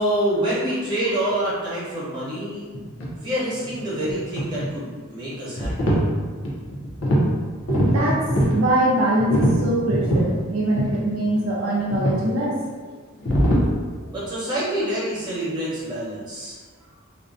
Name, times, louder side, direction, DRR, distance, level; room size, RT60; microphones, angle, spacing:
voice 1, 0.0-2.6 3.1-5.9 14.1-16.6, right 1 dB, 20° right, -9 dB, 1.0 m, -26 dB
sound 1, 2.7-3.1 3.5-4.8 5.3-6.0 6.4-7.3 7.6-8.6 9.2-10.3 10.8-11.0 11.3-11.4 11.9-12.2 13.2-13.6, equal, 60° left, 0.6 m, -22 dB
voice 2, 7.9-12.9 13.6-13.7, right 1 dB, 75° right, -4 dB, 0.4 m, -23 dB
2.5 x 2.1 x 2.5 m, 1.5 s
head